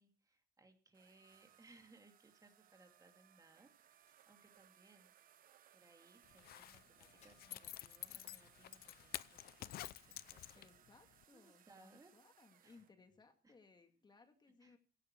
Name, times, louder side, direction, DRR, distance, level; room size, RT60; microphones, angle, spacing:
voice 1, 0.0-5.1 5.7-9.7 10.1-10.7 11.0-12.2 12.6-12.8 13.4-13.5 14.6-14.8, right 3 dB, 20° right, 5 dB, 2.4 m, -67 dB
sound 1, 0.9-12.9, right 11 dB, 55° right, 0.9 m, -68 dB
Crack, 3.9-8.5, left 5 dB, 45° left, 4.9 m, -77 dB
Zipper (clothing), 6.3-10.9 11.2-11.3, left 14 dB, 65° left, 0.6 m, -50 dB
voice 2, 10.5-14.8, left 4 dB, 25° left, 6 dB, 2.1 m, -65 dB
16.5 x 14.0 x 4.6 m, 0.38 s
cardioid pair, 110°, 17 cm